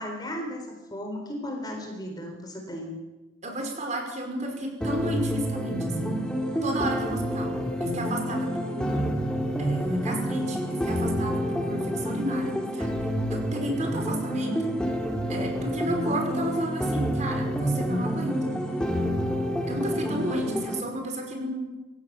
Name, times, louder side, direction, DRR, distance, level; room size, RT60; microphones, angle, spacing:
voice 1, 0.0-2.9, equal, 20° left, 3 dB, 4.0 m, -35 dB
voice 2, 3.4-6.2 6.6-9.1 9.6-12.9 13.3-14.7 15.3-18.5 19.7-21.8, right 1 dB, 35° right, 2 dB, 5.4 m, -32 dB
sound 1, 4.8-20.8, equal, 5° left, 3.1 m, -28 dB
27.0 x 16.0 x 7.5 m, 1.1 s
head